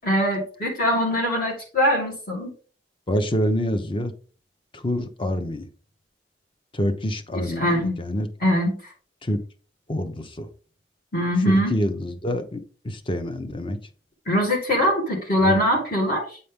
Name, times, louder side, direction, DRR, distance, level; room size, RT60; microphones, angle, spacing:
voice 1, 0.0-2.5 7.3-8.0 8.4-8.9 11.1-11.7 14.3-16.4, equal, 55° left, -3 dB, 2.4 m, -22 dB
voice 2, 3.1-4.1 4.7-5.7 6.7-8.3 9.2-9.4 9.9-10.5 11.4-13.8 15.4-15.6, equal, 30° left, 9 dB, 0.7 m, -26 dB
8.7 x 4.2 x 3.5 m, 0.39 s
head